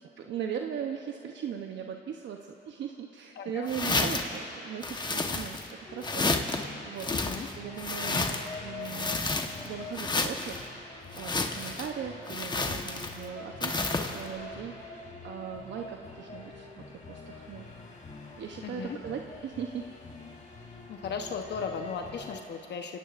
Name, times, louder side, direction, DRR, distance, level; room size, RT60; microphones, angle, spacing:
voice 1, 0.0-9.4 9.6-10.6 11.2-17.7 18.4-19.9, right 8 dB, 65° right, 3 dB, 0.9 m, -39 dB
voice 2, 3.4-3.7 7.1-7.5 18.6-19.0 20.9-23.0, left 5 dB, 60° left, 3 dB, 1.0 m, -36 dB
sound 1, 3.7-4.4 4.8-5.7 6.0-6.6 7.0-8.5 8.8-9.7 9.9-10.6 11.1-11.9 12.3-13.2 13.6-14.2, left 3 dB, 20° left, 1.1 m, -30 dB
sound 2, 5.8-22.4, left 3 dB, 40° left, 2.9 m, -46 dB
27.5 x 17.5 x 2.5 m, 2.9 s
cardioid pair, 90°, 20 cm